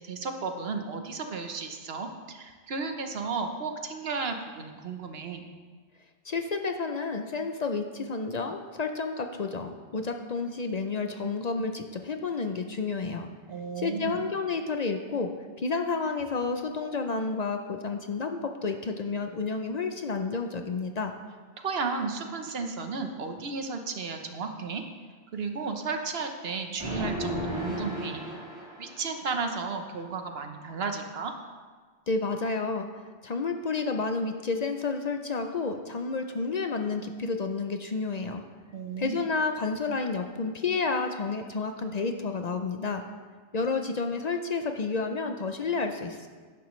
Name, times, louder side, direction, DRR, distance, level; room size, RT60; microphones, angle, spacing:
voice 1, 0.0-5.4 13.5-14.2 21.6-24.8 25.3-28.2 28.8-31.3 38.7-39.2, right 4 dB, 75° right, 5 dB, 1.1 m, -34 dB
voice 2, 6.2-13.3 13.8-15.3 15.6-21.1 32.1-32.9 33.2-38.4 39.0-43.0 43.5-46.3, left 4 dB, 50° left, 6 dB, 0.6 m, -30 dB
sound 1, 26.8-29.2, equal, 25° left, 3.1 m, -34 dB
11.0 x 10.5 x 3.2 m, 1.5 s
omnidirectional pair, 1.0 m